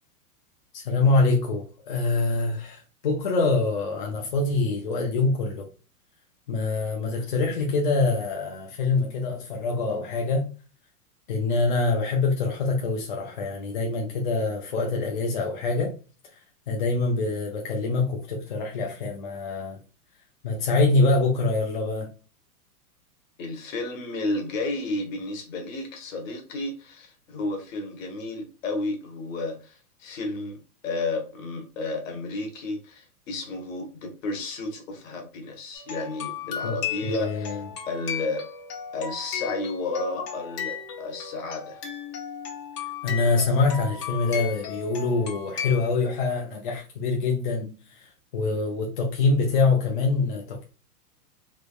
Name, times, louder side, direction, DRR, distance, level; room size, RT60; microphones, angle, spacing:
voice 1, 0.7-5.6 6.5-10.5 11.3-15.9 16.7-19.8 20.4-22.1 36.6-36.8 37.0-37.6 43.0-48.1 48.3-50.6, left 3 dB, 35° left, 0.4 m, -25 dB
voice 2, 23.4-38.5 38.9-41.8, left 2 dB, 55° left, 1.1 m, -32 dB
sound 1, 35.7-45.9, left 8 dB, 80° left, 1.2 m, -35 dB
3.5 x 3.1 x 2.2 m
supercardioid pair, 165°, 46 cm